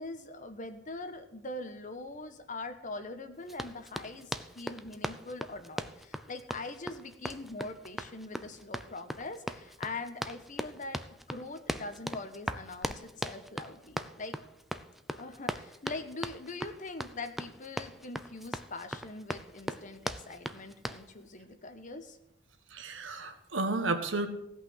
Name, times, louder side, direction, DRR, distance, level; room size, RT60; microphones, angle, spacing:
voice 1, 0.0-14.4 15.2-22.2, left 2 dB, 45° left, 9 dB, 1.1 m, -42 dB
Run, 3.5-21.1, equal, ahead, 0.5 m, -39 dB
voice 2, 22.7-24.3, right 2 dB, 90° right, 8 dB, 1.5 m, -32 dB
16.0 x 5.8 x 7.9 m, 0.83 s
head